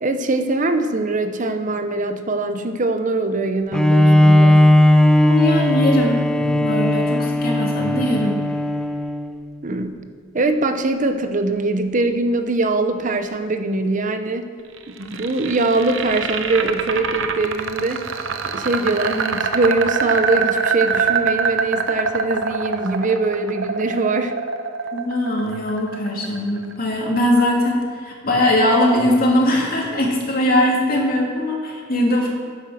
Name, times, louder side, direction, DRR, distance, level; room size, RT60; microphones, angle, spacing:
voice 1, 0.0-4.7 9.6-10.0 10.3-14.5 14.9-18.1 18.4-24.3, right 2 dB, 40° right, 8 dB, 0.7 m, -22 dB
Bowed string instrument, 3.7-9.4, left 1 dB, 5° left, 0.5 m, -16 dB
voice 2, 5.2-8.4 24.9-32.3, left 1 dB, 50° left, -1 dB, 2.6 m, -20 dB
sound 1, 14.8-26.8, right 5 dB, 70° right, 0.8 m, -24 dB
10.0 x 9.4 x 6.4 m, 2.1 s
head